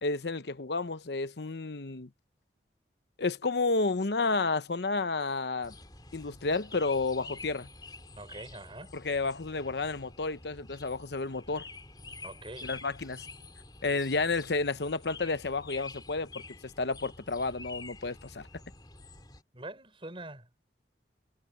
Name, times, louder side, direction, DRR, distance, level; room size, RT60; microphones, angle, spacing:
voice 1, 0.0-2.1 3.2-5.7 6.1-7.7 8.9-11.7 12.6-13.2 13.8-16.3 16.6-18.5, left 3 dB, 70° left, 0.9 m, -31 dB
sound 1, 5.6-19.4, left 3 dB, 25° left, 3.5 m, -48 dB
voice 2, 8.2-8.9 12.2-12.7 19.5-20.5, right 2 dB, 30° right, 4.6 m, -44 dB
head